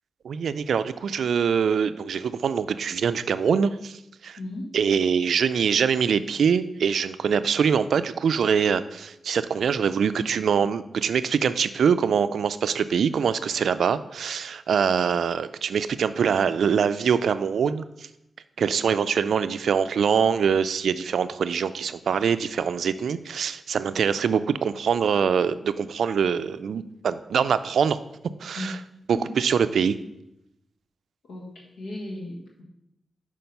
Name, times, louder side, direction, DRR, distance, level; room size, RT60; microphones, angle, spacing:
voice 1, 0.2-4.4 4.7-18.1 18.6-28.0 28.4-28.7 29.1-30.0, right 7 dB, 80° right, 13 dB, 0.3 m, -24 dB
voice 2, 4.4-4.8 28.5-28.7 29.1-29.4 31.2-32.6, left 1 dB, 85° left, -1 dB, 1.4 m, -36 dB
5.7 x 4.9 x 5.3 m, 0.84 s
cardioid pair, 50°, 0 cm